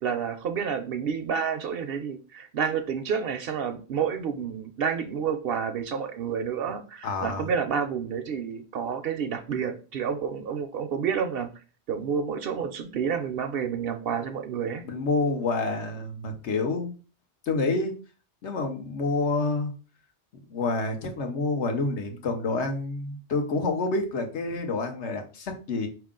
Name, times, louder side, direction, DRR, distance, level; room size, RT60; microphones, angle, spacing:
voice 1, 0.0-11.5 11.9-14.8, right 7 dB, 65° right, 0.7 m, -29 dB
voice 2, 7.0-7.5 14.8-16.9 17.5-17.9 18.4-19.7 20.5-25.9, left 3 dB, 80° left, 1.2 m, -28 dB
4.7 x 2.9 x 3.7 m
omnidirectional pair, 1.2 m